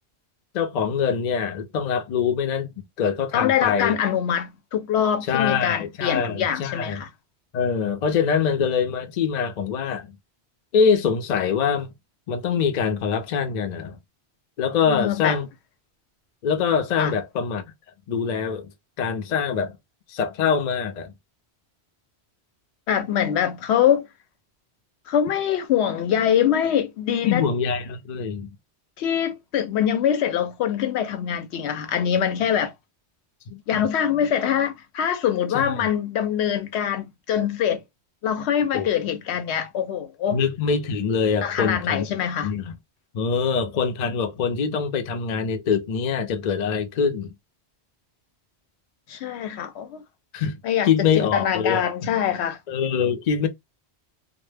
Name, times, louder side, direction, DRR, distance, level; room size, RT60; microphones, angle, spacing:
voice 1, 0.5-4.0 5.3-7.0 7.5-10.2 10.7-11.9 12.3-14.0 14.6-15.5 16.4-17.6 18.1-18.7 19.0-19.8 20.1-21.1 27.2-28.5 33.5-33.6 35.5-35.9 38.7-38.9 40.3-42.1 42.4-42.7 43.1-47.3 50.3-50.6 50.8-51.9 52.7-53.5, left 6 dB, 55° left, 0.5 m, -24 dB
voice 2, 3.3-7.1 14.9-15.4 17.0-17.1 22.9-24.1 25.1-27.5 29.0-32.7 33.7-37.8 38.2-40.4 41.4-42.5 49.1-50.0 50.6-52.6, left 9 dB, 75° left, 0.8 m, -24 dB
2.1 x 2.0 x 3.2 m
omnidirectional pair, 1.1 m